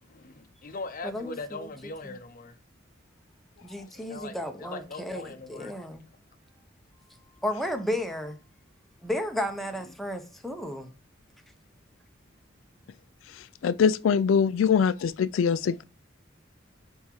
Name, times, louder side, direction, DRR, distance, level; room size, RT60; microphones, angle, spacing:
voice 1, 0.0-2.6 3.9-5.7, left 3 dB, 45° left, 0.7 m, -40 dB
voice 2, 1.0-1.7 2.0-2.1 3.6-6.1 7.4-8.4 9.0-10.9, left 1 dB, ahead, 0.8 m, -33 dB
voice 3, 13.6-15.8, left 6 dB, 80° left, 0.3 m, -23 dB
9.5 x 3.6 x 3.0 m
head